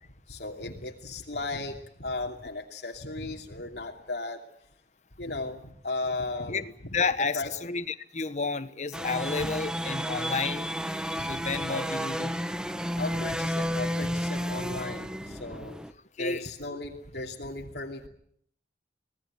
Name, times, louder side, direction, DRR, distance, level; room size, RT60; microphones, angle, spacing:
voice 1, 0.3-4.4 5.2-6.7 7.3-7.5 9.4-9.5 11.2-11.8 13.0-15.8 16.2-18.1, left 2 dB, 70° left, 1 dB, 2.7 m, -36 dB
voice 2, 6.9-10.7 11.3-12.4 16.2-16.5, left 4 dB, 40° left, 12 dB, 1.2 m, -31 dB
sound 1, 8.9-15.9, equal, 5° right, 1.0 m, -32 dB
24.5 x 19.0 x 9.0 m, 0.68 s
head